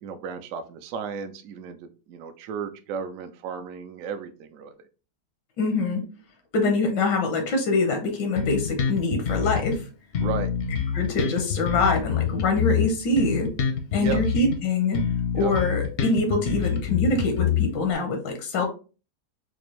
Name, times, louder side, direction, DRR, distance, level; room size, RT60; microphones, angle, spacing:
voice 1, 0.0-1.8 2.1-4.7 10.2-10.5 13.9-14.2 15.4-15.5, right 7 dB, 70° right, 8 dB, 0.8 m, -34 dB
voice 2, 5.6-6.0 6.5-9.8 10.9-13.5 13.9-15.0 15.3-18.6, left 3 dB, 85° left, 4 dB, 1.4 m, -24 dB
Bass guitar, 8.3-9.8 10.1-14.6 14.9-17.9, left 7 dB, 65° left, 0.7 m, -26 dB
4.3 x 2.5 x 3.0 m, 0.35 s
omnidirectional pair, 1.8 m